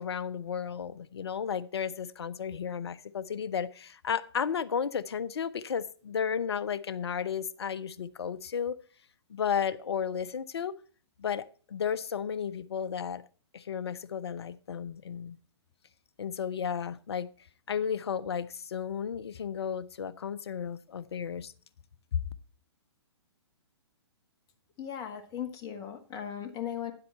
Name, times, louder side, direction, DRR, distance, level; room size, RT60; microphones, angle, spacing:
voice 1, 0.0-8.8 9.3-10.7 11.2-13.2 13.5-15.4 16.2-17.3 17.7-21.5 22.1-22.2, left 7 dB, 65° left, 0.7 m, -33 dB
voice 2, 24.8-26.9, left 9 dB, 25° left, 1.5 m, -37 dB
9.7 x 7.8 x 4.4 m
figure-of-eight pair, 120°, 15 cm